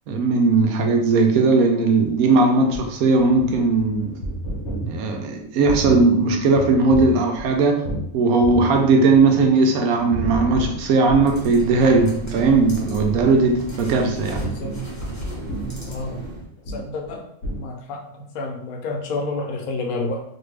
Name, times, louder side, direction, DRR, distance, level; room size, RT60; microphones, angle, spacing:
voice 1, 0.1-4.2 4.9-7.9 8.1-14.4, right 3 dB, 85° right, 3 dB, 1.1 m, -18 dB
sound 1, 2.2-8.1 8.4-9.6 9.9-11.5 11.8-12.0 12.3-12.5 13.0-13.3 13.8-17.2 17.4-17.6, right 1 dB, 60° left, 1.0 m, -31 dB
sound 2, 11.1-16.5, right 2 dB, 15° left, 0.6 m, -34 dB
voice 2, 14.4-14.7 15.8-16.2 16.7-17.3 17.6-20.2, left 3 dB, 90° left, 3 dB, 1.1 m, -29 dB
2.8 x 2.6 x 3.2 m, 0.71 s
omnidirectional pair, 1.5 m